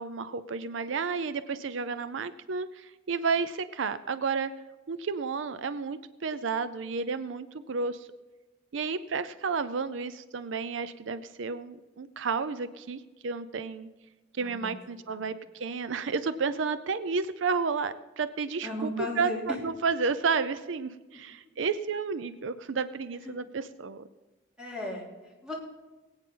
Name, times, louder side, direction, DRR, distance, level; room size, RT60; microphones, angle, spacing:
voice 1, 0.0-4.5 4.9-8.1 8.7-13.9 14.3-18.9 19.2-24.0, right 5 dB, 80° right, 13 dB, 0.5 m, -31 dB
voice 2, 14.4-14.7 15.1-15.3 18.6-19.6 21.1-21.2 23.2-23.3 24.6-25.5, left 1 dB, 5° right, -5 dB, 3.1 m, -36 dB
21.5 x 8.8 x 3.8 m, 1.1 s
head